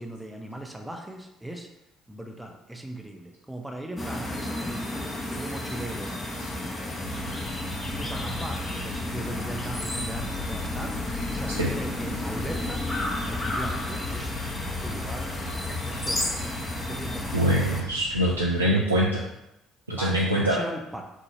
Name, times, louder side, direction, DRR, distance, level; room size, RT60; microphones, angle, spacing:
voice 1, 0.0-1.7 2.1-7.5 7.8-11.0 11.3-12.9 13.2-14.3 14.8-15.3 15.7-17.4 18.6-19.0 19.9-21.0, right 1 dB, 5° right, 2 dB, 0.7 m, -39 dB
sound 1, 4.0-17.8, left 1 dB, 20° left, 1.0 m, -32 dB
sound 2, 7.0-18.4, left 4 dB, 60° left, 0.7 m, -38 dB
voice 2, 17.3-19.1 19.9-20.6, right 1 dB, 85° right, -3 dB, 0.3 m, -23 dB
5.8 x 2.7 x 2.8 m, 0.90 s
figure-of-eight pair, 50°, 0 cm